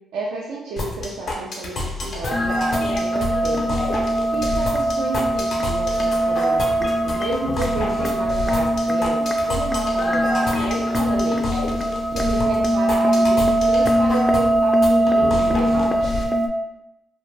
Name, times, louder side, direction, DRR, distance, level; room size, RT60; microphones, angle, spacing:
voice 1, 0.1-3.9 4.3-11.8 12.1-16.3, right 3 dB, 85° right, -3 dB, 0.3 m, -31 dB
sound 1, 0.8-16.2, left 2 dB, 60° left, 0.6 m, -28 dB
sound 2, 2.3-16.5, right 1 dB, 5° left, 0.3 m, -21 dB
2.4 x 2.0 x 3.2 m, 0.93 s
cardioid pair, 70°, 0 cm